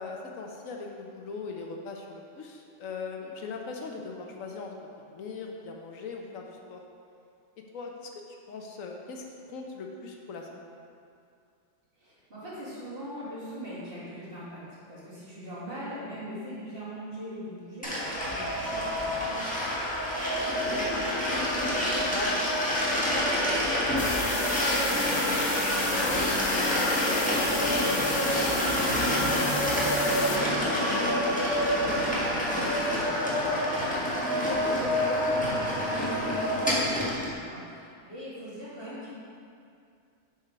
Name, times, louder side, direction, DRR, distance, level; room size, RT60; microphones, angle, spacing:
voice 1, 0.0-4.7 5.1-6.8 7.7-10.8 20.3-24.4 25.1-31.5 31.8-32.7, left 4 dB, 85° left, 1 dB, 1.2 m, -40 dB
voice 2, 12.0-19.4 33.9-39.1, equal, 45° right, -10 dB, 2.3 m, -40 dB
sound 1, 17.8-37.3, equal, 5° left, 1.3 m, -27 dB
sound 2, 24.0-30.4, left 5 dB, 65° left, 1.0 m, -34 dB
sound 3, 24.8-30.6, left 1 dB, 80° right, 1.7 m, -35 dB
7.5 x 4.4 x 5.0 m, 2.4 s
omnidirectional pair, 1.3 m